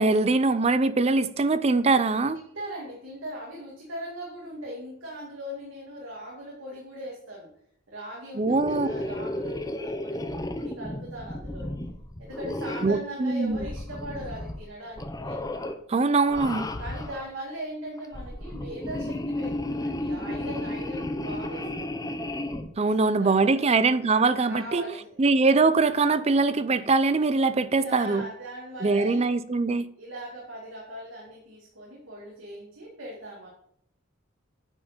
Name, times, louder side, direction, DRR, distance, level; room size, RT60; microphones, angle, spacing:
voice 1, 0.0-2.4 8.4-8.9 12.8-13.6 15.9-16.7 22.8-24.9 25.2-28.3 28.8-29.9, right 3 dB, 30° right, 0.5 m, -22 dB
voice 2, 2.5-7.5 7.9-11.7 12.2-15.4 16.8-21.7 23.0-23.6 24.5-25.1 27.8-29.4 30.0-33.5, right 1 dB, 70° right, 2.2 m, -39 dB
sound 1, 8.4-13.0 13.5-14.7 14.9-15.8 16.2-17.3 18.0-22.7, left 1 dB, 20° left, 0.7 m, -33 dB
8.9 x 4.8 x 6.6 m
head